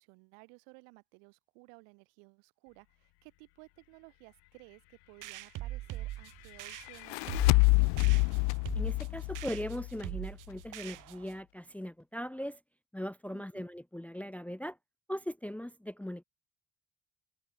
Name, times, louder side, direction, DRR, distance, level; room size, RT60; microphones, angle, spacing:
voice 1, 0.0-8.0 13.3-13.7, right 40 dB or more, 80° right, 4.1 m, -57 dB
sound 1, 5.2-11.4, right 15 dB, 55° right, 0.8 m, -42 dB
sound 2, 6.9-10.2, left 35 dB, 75° left, 0.6 m, -27 dB
voice 2, 8.7-12.6 12.9-14.8 15.1-16.2, equal, 5° left, 0.8 m, -39 dB
hypercardioid pair, 60°, 37 cm